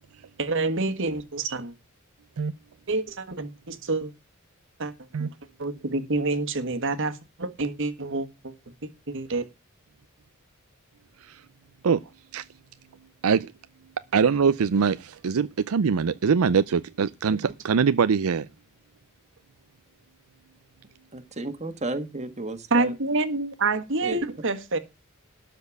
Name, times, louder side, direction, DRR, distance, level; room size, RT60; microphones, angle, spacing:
voice 1, 0.4-1.7 2.9-4.1 4.8-4.9 5.2-5.3 5.6-8.5 8.8-9.4 17.4-17.5 22.7-24.8, right 3 dB, 65° right, 1.5 m, -27 dB
voice 2, 14.1-15.0 15.2-18.5, right 6 dB, 85° right, 0.5 m, -22 dB
voice 3, 21.1-22.9 24.0-24.2, right 2 dB, 35° right, 1.5 m, -33 dB
12.5 x 4.3 x 8.2 m
head